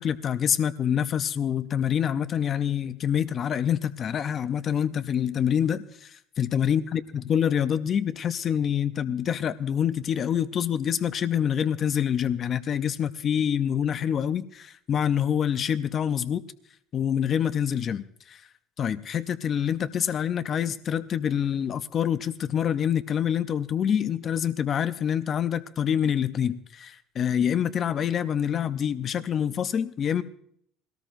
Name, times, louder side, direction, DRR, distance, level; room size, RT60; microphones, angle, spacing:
voice 1, 0.0-16.4 16.9-18.4 18.8-30.2, left 8 dB, 30° left, 0.5 m, -26 dB
21.0 x 18.0 x 2.6 m
cardioid pair, 160°, 0 cm